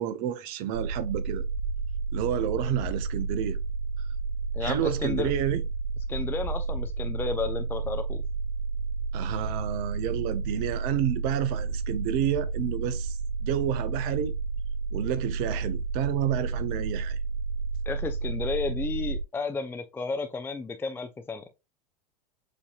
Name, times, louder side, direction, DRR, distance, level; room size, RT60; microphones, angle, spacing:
voice 1, 0.0-1.4 2.1-3.6 4.6-5.6 9.1-14.3 14.9-17.2, right 10 dB, 45° right, 0.6 m, -30 dB
sound 1, 0.7-19.2, right 4 dB, 85° right, 1.6 m, -31 dB
voice 2, 4.5-5.3 6.1-8.2 17.9-21.5, left 4 dB, 10° left, 0.5 m, -32 dB
7.3 x 2.7 x 2.3 m
figure-of-eight pair, 85°, 20 cm